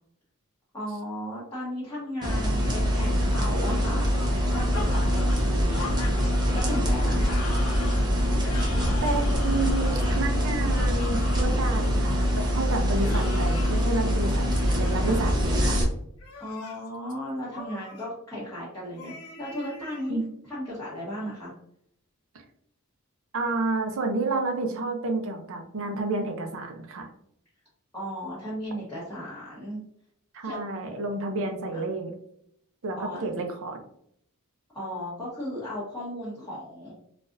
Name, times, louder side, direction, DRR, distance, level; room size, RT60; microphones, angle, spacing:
voice 1, 0.7-4.1 4.5-5.9 6.5-7.5 16.4-20.2 20.5-21.5 27.9-29.8 30.4-30.6 33.0-33.4 34.7-36.9, equal, 15° left, -10 dB, 1.1 m, -35 dB
sound 1, 2.2-15.8, equal, 20° right, 0.7 m, -24 dB
sound 2, 4.1-11.9 12.9-13.9 14.6-15.3 16.1-16.9 17.5-18.1 19.0-20.1, left 3 dB, 75° left, 0.7 m, -41 dB
voice 2, 9.0-15.8 20.1-20.2 23.3-27.1 30.3-32.1 32.8-33.8, right 2 dB, 65° right, 4 dB, 0.6 m, -30 dB
3.9 x 2.5 x 2.5 m, 0.70 s
head